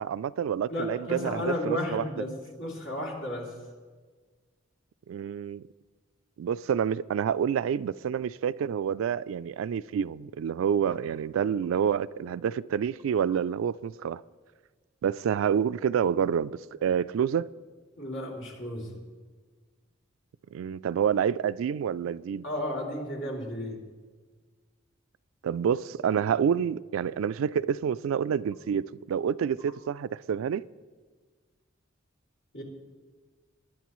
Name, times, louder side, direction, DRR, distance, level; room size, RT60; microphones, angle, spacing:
voice 1, 0.0-2.0 5.1-5.6 6.4-14.2 15.0-17.5 20.5-22.4 25.4-30.6, right 8 dB, 90° right, 0.3 m, -28 dB
voice 2, 0.7-2.3 2.6-3.5 18.0-18.9 22.4-23.8 32.5-32.6, left 1 dB, 80° left, 2.8 m, -33 dB
21.0 x 10.0 x 3.1 m
head